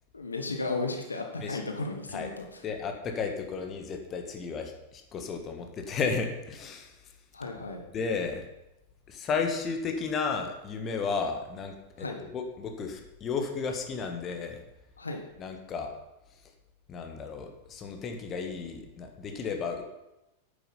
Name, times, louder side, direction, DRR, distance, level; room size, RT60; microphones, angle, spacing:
voice 1, 0.1-2.6 7.3-7.8 12.0-12.2 15.0-15.2, left 3 dB, 75° left, 3 dB, 1.4 m, -34 dB
voice 2, 2.6-7.0 7.9-8.4 9.1-12.1 12.3-14.6 15.4-15.9 16.9-19.8, left 5 dB, 30° left, 5 dB, 1.6 m, -33 dB
9.6 x 8.9 x 5.6 m, 0.92 s
figure-of-eight pair, 90°, 0 cm